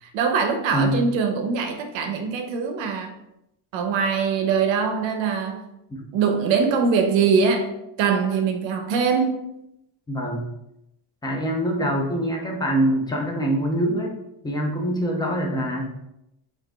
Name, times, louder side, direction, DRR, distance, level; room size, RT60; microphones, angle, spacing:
voice 1, 0.0-3.1 3.7-5.6 6.1-7.7 8.0-9.4, right 5 dB, 65° right, 6 dB, 0.8 m, -22 dB
voice 2, 0.7-1.1 5.9-6.0 10.1-10.4 11.2-14.1 14.4-16.1, right 1 dB, 10° left, 0 dB, 0.4 m, -24 dB
6.0 x 2.6 x 3.4 m, 0.85 s
cardioid pair, 175°, 50 cm